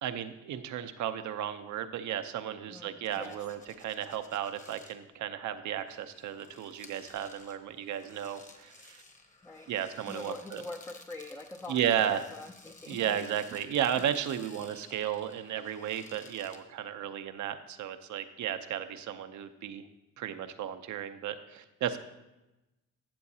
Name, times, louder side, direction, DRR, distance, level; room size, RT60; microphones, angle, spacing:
voice 1, 0.0-9.0 9.7-10.6 11.7-12.2 12.9-19.8 20.2-22.0, right 10 dB, 75° right, 9 dB, 0.7 m, -34 dB
voice 2, 2.7-3.4 9.4-9.7 10.1-13.7 14.0-14.1 14.4-14.5, left 2 dB, 5° left, 3 dB, 0.5 m, -44 dB
sound 1, 3.0-5.0 5.8-16.6, left 3 dB, 25° left, 1.1 m, -55 dB
13.5 x 7.1 x 2.8 m, 0.99 s
cardioid pair, 90°, 30 cm